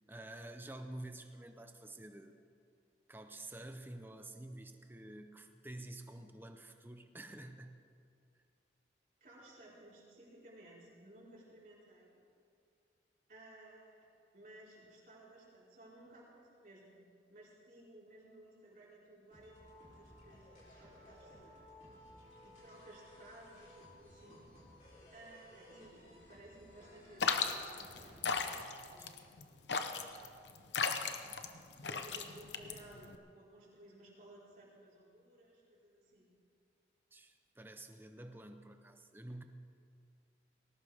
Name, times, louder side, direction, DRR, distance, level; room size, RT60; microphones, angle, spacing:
voice 1, 0.1-2.4 3.1-7.8 29.0-29.1 37.1-39.4, right 1 dB, 10° right, 7 dB, 0.8 m, -49 dB
voice 2, 9.2-12.2 13.3-14.1 14.3-17.0 17.3-22.0 22.4-24.5 25.1-28.3 28.9-29.9 30.4-31.2 31.8-36.3, right 1 dB, 45° right, -6 dB, 4.6 m, -58 dB
sound 1, 19.3-28.5, left 1 dB, 40° left, 3.9 m, -58 dB
sound 2, 27.2-33.2, left 5 dB, 75° left, 0.9 m, -36 dB
19.5 x 18.0 x 3.6 m, 2.4 s
head